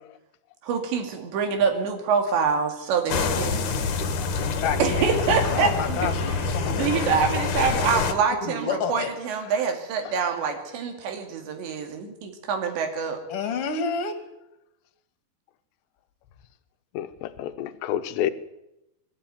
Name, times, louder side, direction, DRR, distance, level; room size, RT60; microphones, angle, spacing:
voice 1, 0.6-3.6 4.8-6.0 6.7-13.2, right 6 dB, 80° right, 4.7 m, -25 dB
sound 1, 3.1-8.1, left 4 dB, 55° left, 2.6 m, -26 dB
voice 2, 4.6-5.1 5.5-7.0 7.7-7.8 8.3-9.1 13.3-14.1, left 6 dB, 40° left, 2.7 m, -29 dB
voice 3, 16.9-18.3, left 11 dB, 85° left, 3.1 m, -29 dB
24.0 x 12.5 x 9.4 m
omnidirectional pair, 5.0 m